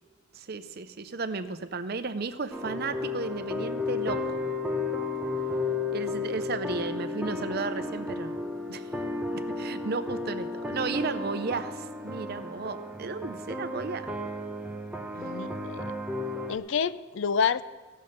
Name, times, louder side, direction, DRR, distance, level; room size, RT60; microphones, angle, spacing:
voice 1, 0.3-4.4 5.9-8.3 8.7-8.9 9.3-14.1, right 4 dB, 50° right, 11 dB, 0.6 m, -34 dB
sound 1, 2.5-16.6, left 3 dB, 5° right, 0.7 m, -33 dB
voice 2, 15.1-15.9 16.5-17.6, left 6 dB, 65° left, 15 dB, 0.4 m, -28 dB
16.0 x 5.4 x 6.5 m, 1.4 s
head